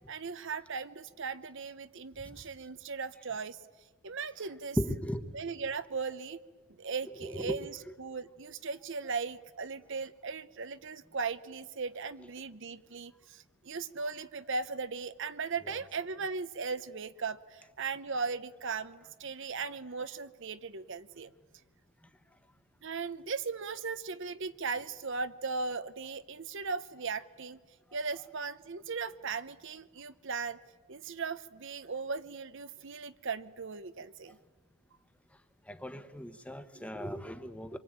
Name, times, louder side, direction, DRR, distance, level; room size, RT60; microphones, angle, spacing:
voice 1, 0.1-3.6 4.0-4.8 5.3-6.4 6.8-21.3 22.8-27.6 27.9-30.6 30.9-34.4 36.7-36.9, right 4 dB, 55° right, 14 dB, 0.8 m, -38 dB
voice 2, 4.8-5.3 7.4-7.6 35.7-37.8, equal, 5° left, 9 dB, 1.2 m, -36 dB
26.0 x 23.5 x 8.8 m, 1.4 s
head